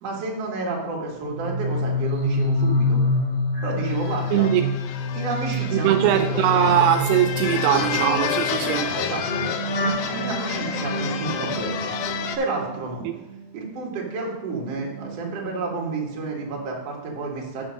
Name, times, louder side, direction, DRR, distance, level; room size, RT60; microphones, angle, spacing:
voice 1, 0.0-3.0 3.6-4.5 5.1-6.8 8.9-9.5 9.8-11.9 12.4-13.0 13.5-17.7, right 3 dB, 50° right, 2.1 m, -30 dB
sound 1, 1.2-13.5 13.8-15.9 16.2-16.5, left 2 dB, 40° left, 1.2 m, -28 dB
sound 2, 3.9-12.4, left 9 dB, 80° left, 2.4 m, -30 dB
voice 2, 4.3-4.7 5.7-9.0 13.1-13.2, right 11 dB, 85° right, 2.3 m, -21 dB
6.3 x 6.1 x 6.3 m
omnidirectional pair, 4.8 m